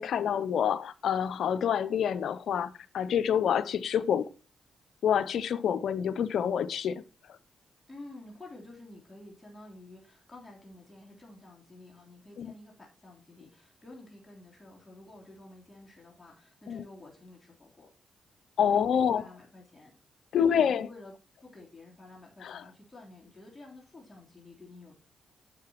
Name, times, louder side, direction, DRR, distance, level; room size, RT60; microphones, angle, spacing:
voice 1, 0.0-4.3 5.0-7.0 12.4-12.5 16.7-16.8 18.6-19.2 20.3-20.9 22.4-22.6, left 8 dB, 75° left, 0.5 m, -27 dB
voice 2, 7.9-17.9 18.7-19.9 20.3-21.1 21.4-24.9, left 2 dB, 20° left, 3.4 m, -50 dB
9.8 x 7.6 x 2.9 m
supercardioid pair, 55°, 0 cm